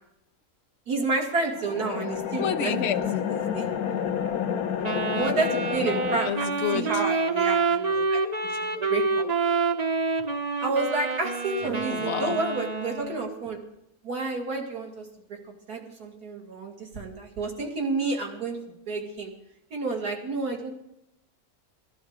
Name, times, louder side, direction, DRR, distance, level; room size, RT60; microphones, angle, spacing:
voice 1, 0.9-2.7 3.3-3.7 5.1-8.2 8.6-9.3 10.6-13.6 14.0-15.0 15.7-19.3 19.7-20.7, right 3 dB, 90° right, 1 dB, 2.8 m, -30 dB
sound 1, 1.5-6.2, left 8 dB, 80° left, 1.4 m, -29 dB
voice 2, 2.4-3.1 6.2-6.9 11.8-12.4, left 8 dB, 55° left, 5 dB, 1.0 m, -29 dB
Wind instrument woodwind instrument, 4.8-13.3, right 4 dB, 40° right, 0.6 m, -27 dB
17.0 x 12.0 x 4.8 m, 0.83 s
omnidirectional pair, 1.6 m